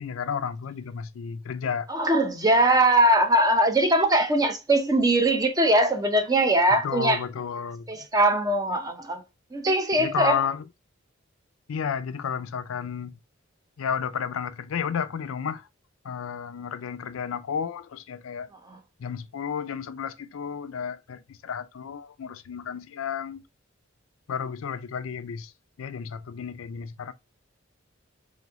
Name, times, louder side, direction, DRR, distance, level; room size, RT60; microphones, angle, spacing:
voice 1, 0.0-1.9 6.8-7.9 10.0-10.7 11.7-13.1 13.8-15.7 16.0-18.5 19.0-23.4 24.3-25.5 25.8-27.1, left 7 dB, 85° left, 0.4 m, -32 dB
voice 2, 1.9-7.2 7.9-9.2 9.5-10.4, right 1 dB, 20° right, 0.6 m, -21 dB
3.4 x 3.1 x 3.5 m
head